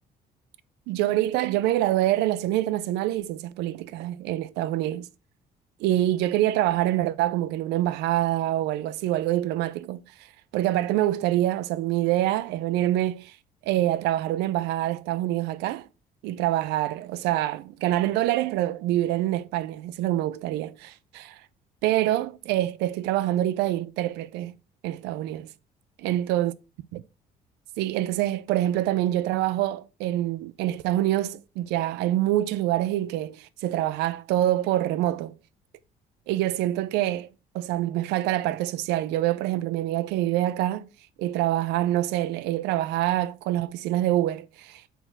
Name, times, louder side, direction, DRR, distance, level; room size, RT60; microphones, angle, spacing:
voice 1, 0.9-5.1 5.8-10.0 10.5-13.4 13.6-15.9 16.2-21.4 21.8-24.6 24.8-25.5 26.0-26.5 26.9-27.0 27.8-35.3 36.3-37.3 37.5-40.9 41.2-44.9, right 14 dB, 90° right, 0.5 m, -26 dB
8.1 x 3.5 x 5.9 m
cardioid pair, 110°, 17 cm